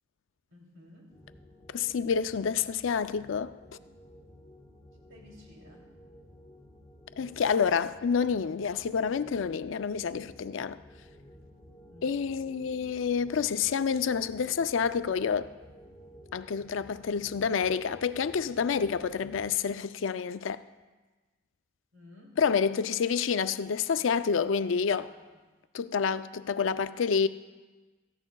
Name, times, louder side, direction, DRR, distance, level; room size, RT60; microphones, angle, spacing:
voice 1, 0.5-1.2 5.1-5.9 11.9-12.2 12.7-12.9 21.9-22.4 24.5-25.4, equal, 90° right, 2.9 m, -53 dB
sound 1, 1.1-19.5, equal, 20° left, 3.3 m, -53 dB
voice 2, 1.7-3.5 7.2-10.8 12.0-15.5 16.3-20.6 22.4-25.1 25.7-27.3, left 6 dB, 75° left, 0.4 m, -28 dB
18.0 x 14.0 x 2.3 m
head